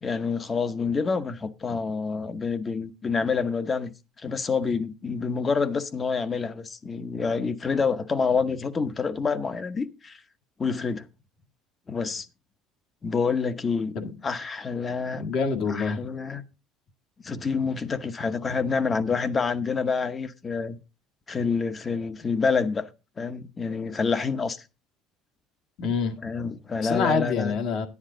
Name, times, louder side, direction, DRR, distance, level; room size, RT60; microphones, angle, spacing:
voice 1, 0.0-10.2 10.6-11.0 11.9-12.3 13.0-13.9 14.2-15.3 15.7-16.4 17.2-20.8 21.3-22.9 23.2-24.6 26.2-27.5, left 5 dB, 25° left, 0.9 m, -27 dB
voice 2, 15.1-16.0 25.8-26.2 26.8-27.9, left 5 dB, 55° left, 1.7 m, -26 dB
10.5 x 9.7 x 3.8 m
cardioid pair, 130°, 0 cm